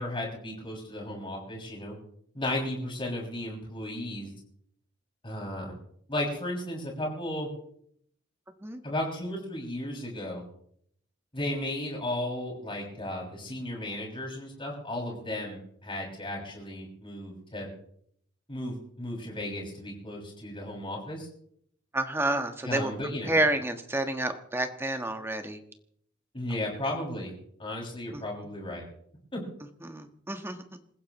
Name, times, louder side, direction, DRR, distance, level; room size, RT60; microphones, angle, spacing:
voice 1, 0.0-2.0 2.3-4.3 5.2-5.8 6.1-7.5 8.8-10.4 11.3-17.7 18.5-21.3 22.6-23.4 26.3-27.3 27.6-28.8 29.3-29.4, left 1 dB, 25° left, -2 dB, 6.2 m, -34 dB
voice 2, 21.9-22.9 23.2-25.6 28.1-28.2 29.8-30.6, right 1 dB, 10° right, 6 dB, 1.4 m, -29 dB
27.5 x 15.5 x 3.1 m, 0.67 s
head